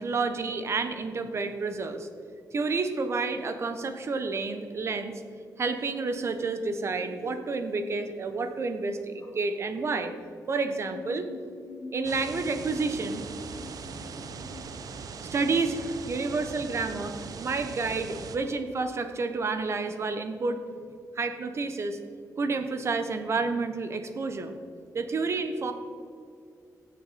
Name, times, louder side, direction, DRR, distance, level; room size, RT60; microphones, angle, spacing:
voice 1, 0.0-2.1 2.5-5.2 5.6-10.1 10.5-11.3 11.9-13.2 15.3-20.6 21.1-22.0 22.4-24.6 24.9-25.7, right 4 dB, 45° right, 8 dB, 1.0 m, -30 dB
sound 1, 6.8-7.3 9.1-10.1 10.5-14.6, left 3 dB, 50° left, 2.4 m, -46 dB
sound 2, 12.0-18.4, right 5 dB, 65° right, 0.8 m, -40 dB
16.5 x 6.7 x 4.2 m, 2.3 s
wide cardioid pair, 135°, 7 cm